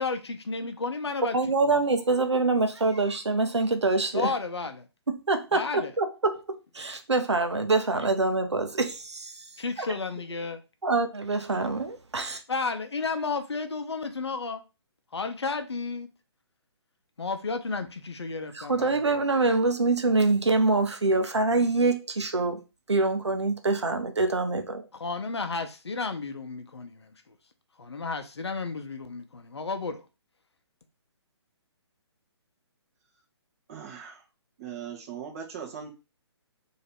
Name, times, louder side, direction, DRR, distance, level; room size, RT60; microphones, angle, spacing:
voice 1, 0.0-1.4 1.6-1.8 4.1-4.9 5.5-5.9 9.6-10.6 12.5-14.6 15.1-16.1 17.2-19.0 24.9-27.4 27.8-30.0, left 4 dB, 70° left, 0.7 m, -32 dB
voice 2, 1.3-4.3 5.1-9.5 10.8-12.4 18.5-22.6 22.9-24.8, right 3 dB, 75° right, 0.8 m, -25 dB
voice 3, 33.7-34.2 34.6-35.9, right 7 dB, 30° right, 1.2 m, -39 dB
3.2 x 2.8 x 4.4 m
figure-of-eight pair, 135°, 14 cm